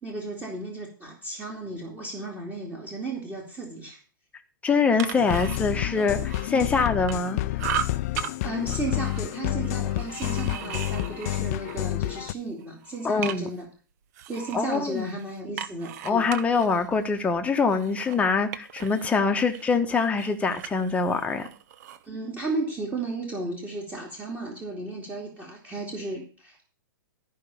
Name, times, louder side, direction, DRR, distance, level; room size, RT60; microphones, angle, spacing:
voice 1, 0.0-4.0 8.4-13.7 14.3-16.2 22.0-26.6, right 2 dB, 15° right, -1 dB, 2.8 m, -34 dB
voice 2, 4.6-7.4 13.0-13.5 14.5-15.0 16.0-21.5, left 4 dB, 10° left, 5 dB, 1.3 m, -24 dB
sound 1, 4.8-7.3 7.6-8.3 8.7-12.2 12.6-13.7 14.2-19.1 19.4-22.1, right 10 dB, 50° right, 0.9 m, -37 dB
sound 2, 5.2-12.3, left 16 dB, 45° left, 0.6 m, -29 dB
13.5 x 5.6 x 7.1 m, 0.38 s
hypercardioid pair, 135°, 11 cm